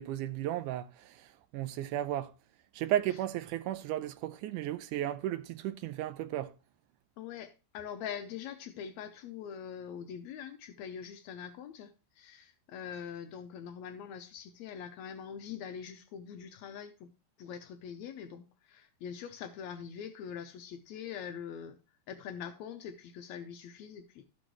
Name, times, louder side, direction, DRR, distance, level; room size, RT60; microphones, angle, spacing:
voice 1, 0.0-2.3 2.7-6.5, right 12 dB, 80° right, 1.9 m, -34 dB
voice 2, 7.2-17.1 17.4-21.8 22.1-24.3, left 8 dB, 85° left, 1.6 m, -43 dB
14.0 x 6.4 x 3.0 m
omnidirectional pair, 4.1 m